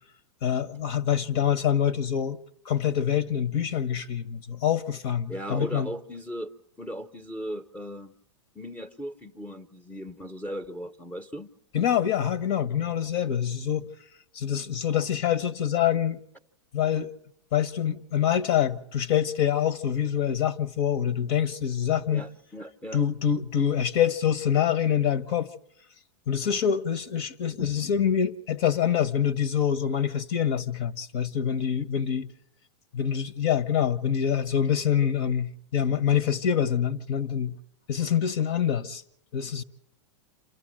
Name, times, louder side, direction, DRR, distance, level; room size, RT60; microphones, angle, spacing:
voice 1, 0.4-2.4 2.6-5.9 11.7-13.8 14.3-16.2 16.7-17.1 17.5-22.2 22.9-25.5 26.3-32.3 32.9-37.5 37.9-39.0 39.3-39.6, left 9 dB, 55° left, 1.2 m, -25 dB
voice 2, 5.3-6.5 6.8-8.1 8.5-11.5 22.1-23.0, equal, 10° left, 0.9 m, -37 dB
27.5 x 14.0 x 7.6 m
hypercardioid pair, 120°, 15 cm